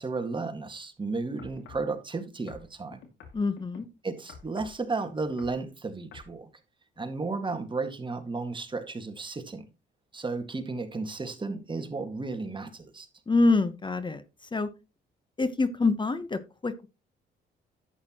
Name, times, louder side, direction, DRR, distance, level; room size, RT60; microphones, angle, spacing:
voice 1, 0.0-3.0 4.0-6.5 7.0-9.6 10.1-13.1, right 3 dB, 25° right, 1.8 m, -33 dB
sound 1, 1.4-1.9 2.5-3.8 4.3-4.8 5.2-5.6 6.1-6.3 7.0-7.1, left 5 dB, 75° left, 2.3 m, -48 dB
voice 2, 3.3-3.9 13.3-14.2 14.5-14.7 15.4-16.9, left 3 dB, 25° left, 1.0 m, -26 dB
11.0 x 8.3 x 3.0 m
cardioid pair, 90°, 20 cm